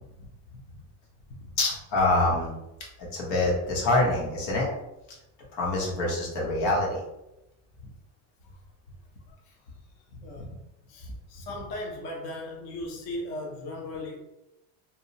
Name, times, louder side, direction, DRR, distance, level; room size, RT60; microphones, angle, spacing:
voice 1, 0.2-0.8 1.4-1.5 7.8-7.9 9.4-10.6 10.9-14.2, left 1 dB, 40° left, -1 dB, 0.4 m, -38 dB
voice 2, 1.6-2.5 3.1-4.7 5.5-7.0, left 2 dB, 85° left, -2 dB, 1.1 m, -25 dB
2.7 x 2.0 x 2.6 m, 0.90 s
supercardioid pair, 150°, 49 cm